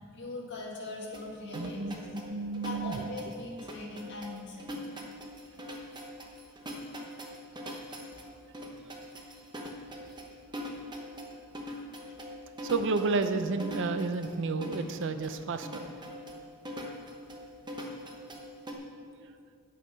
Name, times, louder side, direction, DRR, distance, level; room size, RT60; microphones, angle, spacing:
voice 1, 0.1-2.1 2.6-4.8 9.9-10.1 12.1-12.2, left 2 dB, 55° left, -2 dB, 1.9 m, -41 dB
sound 1, 1.1-18.7, equal, 20° right, 1.0 m, -42 dB
voice 2, 1.5-3.0 12.6-15.8 19.2-19.3, right 4 dB, 60° right, 9 dB, 0.5 m, -31 dB
9.2 x 8.4 x 5.3 m, 2.3 s
head